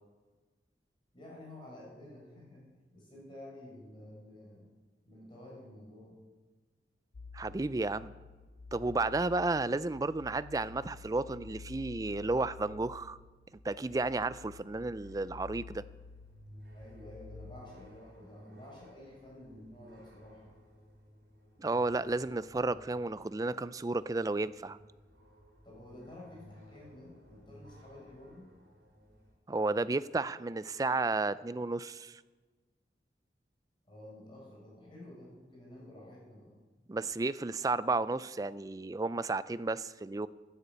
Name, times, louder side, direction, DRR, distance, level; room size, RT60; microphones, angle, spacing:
voice 1, 1.1-4.7 5.0-6.2 16.7-20.5 25.6-28.5 33.9-36.5, left 1 dB, 25° left, -3 dB, 5.4 m, -51 dB
sound 1, 7.1-18.1, left 5 dB, 65° left, 0.5 m, -51 dB
voice 2, 7.3-8.1 8.7-13.2 13.6-15.8 21.6-24.8 29.5-32.1 36.9-40.3, right 3 dB, 20° right, 16 dB, 0.3 m, -32 dB
sound 2, 14.6-29.3, equal, 75° right, 3.9 m, -58 dB
11.0 x 10.0 x 8.0 m, 1.3 s
head